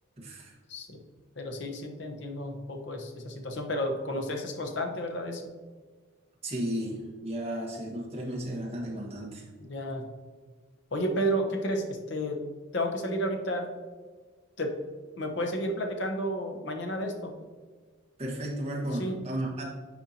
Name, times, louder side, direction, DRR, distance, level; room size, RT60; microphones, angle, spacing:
voice 1, 0.2-0.5 6.4-9.4 18.2-19.7, right 1 dB, 30° right, -3 dB, 1.4 m, -34 dB
voice 2, 1.4-5.5 9.7-10.1 10.9-12.4 12.7-13.7 14.6-14.8 15.2-17.3 18.9-19.2, equal, 55° left, 3 dB, 0.9 m, -32 dB
9.2 x 4.4 x 2.8 m, 1.4 s
head